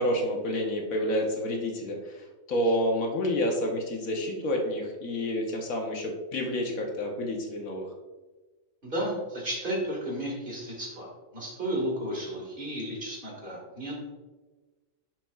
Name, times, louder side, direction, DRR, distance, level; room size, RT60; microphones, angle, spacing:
voice 1, 0.0-7.9, equal, 75° left, 1 dB, 1.4 m, -29 dB
voice 2, 8.8-14.0, right 1 dB, 40° right, -2 dB, 2.0 m, -33 dB
10.5 x 4.6 x 2.3 m, 1.2 s
omnidirectional pair, 1.4 m